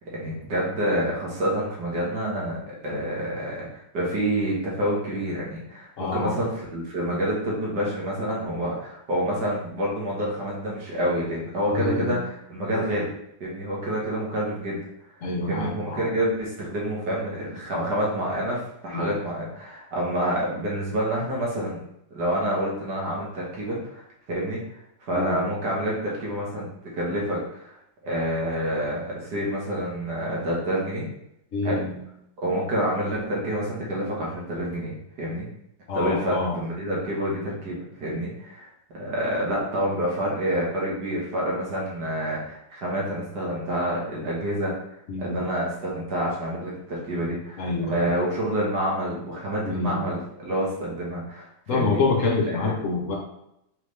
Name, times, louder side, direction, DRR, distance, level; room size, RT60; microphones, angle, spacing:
voice 1, 0.1-13.1 13.4-14.8 15.5-21.8 22.1-24.6 25.0-26.7 26.9-27.7 28.0-31.1 31.6-31.8 32.4-35.5 35.9-38.7 38.9-44.7 45.2-52.0 52.5-52.6, equal, 70° right, -4 dB, 1.8 m, -28 dB
voice 2, 6.0-6.4 11.7-12.2 15.2-16.1 18.9-19.1 25.1-25.4 31.5-32.0 35.9-36.6 45.1-45.4 47.6-48.1 49.6-50.0 51.7-53.2, left 3 dB, 60° left, 0 dB, 0.9 m, -27 dB
4.0 x 3.5 x 3.1 m, 0.78 s
omnidirectional pair, 1.9 m